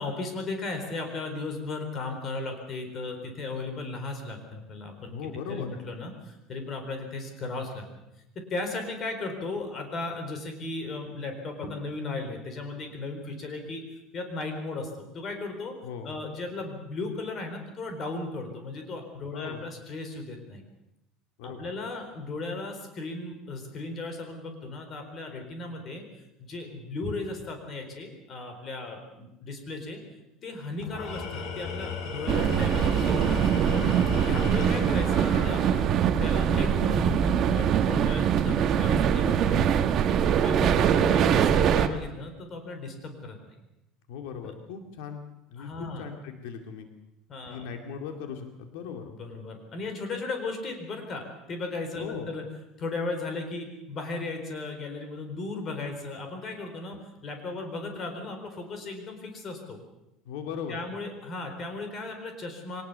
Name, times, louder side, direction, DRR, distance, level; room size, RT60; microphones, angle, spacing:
voice 1, 0.0-5.1 5.5-7.8 8.3-13.8 14.1-15.7 16.0-20.6 21.4-26.0 26.4-30.0 30.4-33.6 34.3-35.8 36.2-39.9 40.4-43.5 44.4-44.5 45.6-46.1 47.3-47.7 49.2-52.4 52.8-57.0 57.2-59.8 60.7-62.8, left 3 dB, 30° left, 5 dB, 4.3 m, -36 dB
voice 2, 5.1-5.7 15.8-16.1 19.3-19.6 21.4-21.6 32.3-32.5 34.5-34.8 40.6-41.0 44.1-45.2 45.5-46.9 47.5-49.1 52.0-52.3 60.2-60.8, left 7 dB, 85° left, 5 dB, 2.5 m, -38 dB
Tools, 30.8-36.2, left 4 dB, 50° left, 3.9 m, -36 dB
sound 1, 32.3-41.9, right 8 dB, 40° right, 1.3 m, -23 dB
23.5 x 19.0 x 6.9 m, 0.89 s
cardioid pair, 155°, 0 cm